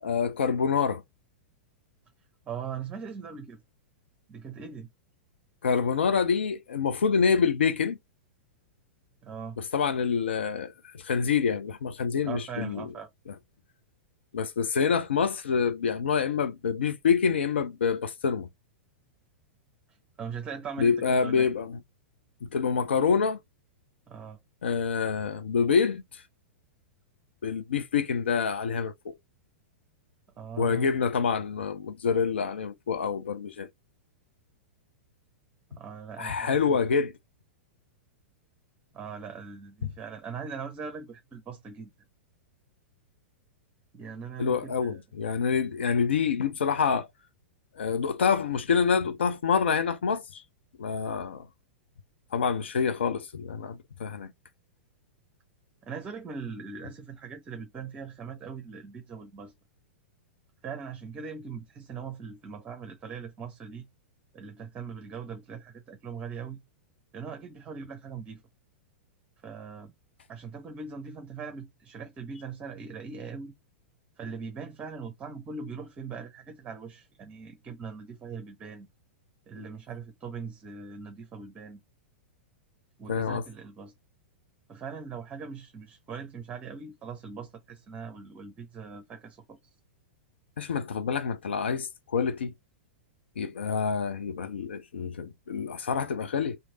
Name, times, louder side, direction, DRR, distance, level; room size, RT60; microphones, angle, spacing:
voice 1, 0.0-1.0 5.6-8.0 9.6-12.9 14.3-18.5 20.8-21.8 22.4-23.4 24.6-26.2 27.4-29.1 30.6-33.7 36.2-37.1 39.8-39.9 44.4-47.1 47.8-50.4 50.8-51.5 52.3-54.3 83.1-83.4 90.6-92.5 93.4-96.6, left 6 dB, 70° left, 0.5 m, -27 dB
voice 2, 2.5-3.6 4.3-4.9 9.2-9.6 12.2-13.1 19.9-21.5 24.1-24.4 30.4-30.9 35.8-36.8 38.9-41.9 43.9-45.0 55.8-59.5 60.6-63.9 64.3-66.6 67.1-68.4 69.4-69.9 70.3-73.5 74.2-78.9 79.5-81.8 83.0-83.9 84.7-89.7, right 6 dB, 20° right, 0.7 m, -40 dB
3.1 x 2.7 x 3.8 m
figure-of-eight pair, 100°, 6 cm